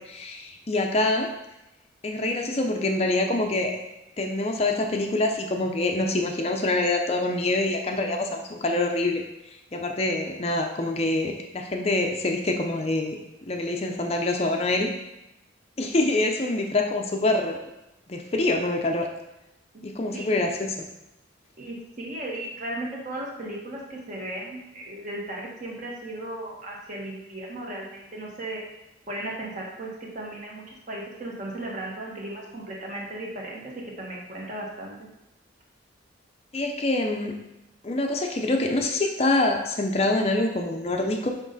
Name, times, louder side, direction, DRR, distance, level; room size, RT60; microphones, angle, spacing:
voice 1, 0.1-1.3 2.0-3.7 4.2-9.2 9.7-13.2 13.5-14.9 15.8-17.6 18.1-19.1 19.8-20.9 36.5-37.3 37.8-41.3, left 2 dB, 30° left, 3 dB, 0.5 m, -25 dB
voice 2, 20.1-20.4 21.6-28.6 29.1-33.7 34.0-35.0, right 1 dB, 40° right, -3 dB, 1.4 m, -36 dB
6.2 x 5.2 x 4.0 m, 0.93 s
head